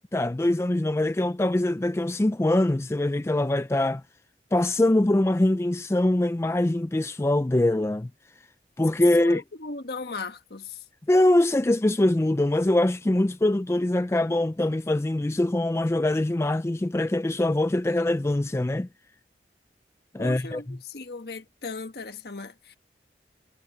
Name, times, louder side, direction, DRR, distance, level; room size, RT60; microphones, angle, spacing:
voice 1, 0.1-4.0 4.5-8.1 8.8-9.4 11.1-18.9 20.1-20.8, left 1 dB, 15° left, 0.3 m, -23 dB
voice 2, 9.2-10.8 20.2-22.8, left 3 dB, 65° left, 1.4 m, -37 dB
head